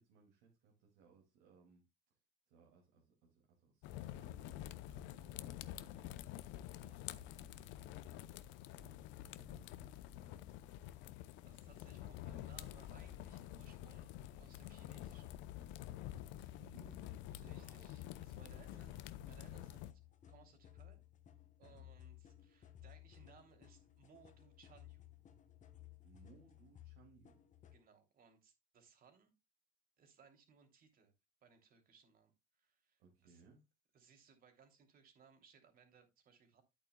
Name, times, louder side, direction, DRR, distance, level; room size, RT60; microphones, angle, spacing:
voice 1, 0.0-1.8 2.5-8.3 8.8-10.7 16.1-17.9 18.4-18.9 21.6-21.9 26.0-27.4 33.0-33.7, right 5 dB, 85° right, 2.4 m, -66 dB
sound 1, 3.8-19.9, left 13 dB, 80° left, 0.7 m, -49 dB
voice 2, 10.8-15.3 16.1-16.2 17.3-19.9 20.3-21.0 21.6-25.1 27.7-29.3 30.0-31.1 31.4-33.4 33.9-36.6, right 6 dB, 50° right, 2.9 m, -66 dB
sound 2, 19.7-27.8, left 12 dB, 40° left, 1.2 m, -59 dB
11.0 x 8.6 x 2.2 m
cardioid pair, 115°, 19 cm